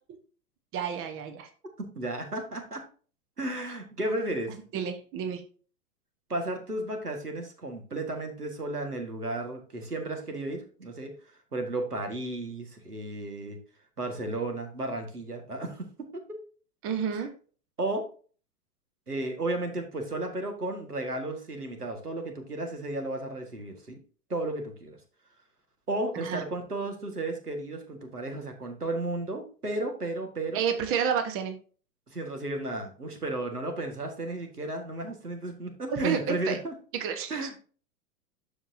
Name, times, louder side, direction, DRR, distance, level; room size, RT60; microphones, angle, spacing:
voice 1, 0.7-1.5 4.7-5.4 16.8-17.3 26.2-26.4 30.5-31.6 35.9-36.6 36.9-37.5, right 7 dB, 30° right, 7 dB, 1.3 m, -30 dB
voice 2, 1.8-2.8 3.4-4.6 6.3-11.1 11.5-13.6 14.0-15.9 17.1-17.3 17.8-18.0 19.1-24.0 24.3-25.0 25.9-30.6 32.1-36.7 37.3-37.6, right 2 dB, 85° right, 4 dB, 2.0 m, -33 dB
12.5 x 4.9 x 2.8 m, 0.39 s
figure-of-eight pair, 100°, 45 cm